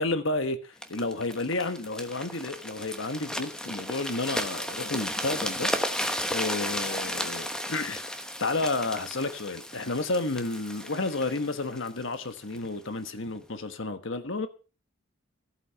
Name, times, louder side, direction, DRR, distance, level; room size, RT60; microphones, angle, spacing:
voice 1, 0.0-5.7 6.3-8.0 8.4-14.5, left 2 dB, 65° left, 1.2 m, -31 dB
sound 1, 0.8-12.7 13.3-13.4, equal, 5° left, 1.1 m, -34 dB
14.5 x 8.5 x 5.6 m
head